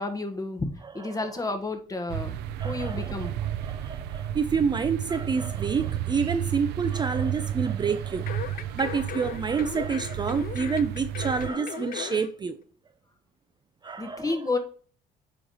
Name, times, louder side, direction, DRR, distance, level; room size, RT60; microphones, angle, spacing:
voice 1, 0.0-3.3 14.0-14.6, left 3 dB, 20° left, 1.5 m, -31 dB
sound 1, 2.1-11.5, right 11 dB, 85° right, 0.6 m, -32 dB
voice 2, 2.6-3.3 3.6-8.4 8.7-12.6 13.8-14.3, right 5 dB, 25° right, 0.5 m, -28 dB
sound 2, 8.3-12.3 12.6-12.7, left 10 dB, 55° left, 0.6 m, -38 dB
8.5 x 3.2 x 5.5 m
cardioid pair, 110°, 17 cm